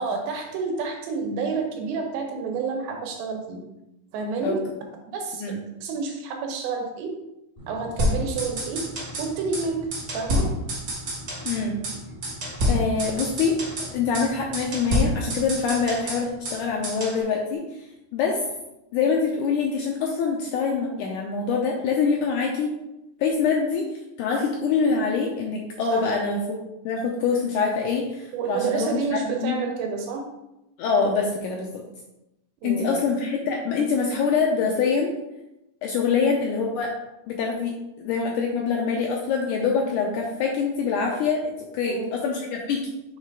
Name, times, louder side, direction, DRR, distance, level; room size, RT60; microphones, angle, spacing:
voice 1, 0.0-3.6 4.1-4.6 5.1-5.5 5.8-7.2 7.7-8.9 9.2-9.9 10.1-10.5 25.9-26.2 28.3-30.3 32.6-33.1 41.8-42.2, right 4 dB, 80° right, 3 dB, 2.6 m, -29 dB
sound 1, 7.6-17.4, equal, 45° right, 0.7 m, -43 dB
sound 2, 8.0-9.3 9.5-9.6 9.9-11.6 11.8-12.0 12.2-13.9 14.1-14.3 14.5-16.6 16.8-17.2, equal, 60° right, 1.2 m, -27 dB
voice 2, 11.5-11.8 12.7-17.6 18.1-18.4 18.9-22.7 23.2-23.8 24.2-26.6 26.9-29.6 30.8-31.8 32.6-35.1 35.8-36.9 37.3-41.4 41.7-42.8, left 5 dB, 80° left, 0 dB, 1.8 m, -25 dB
6.5 x 3.3 x 4.6 m, 0.91 s
omnidirectional pair, 4.1 m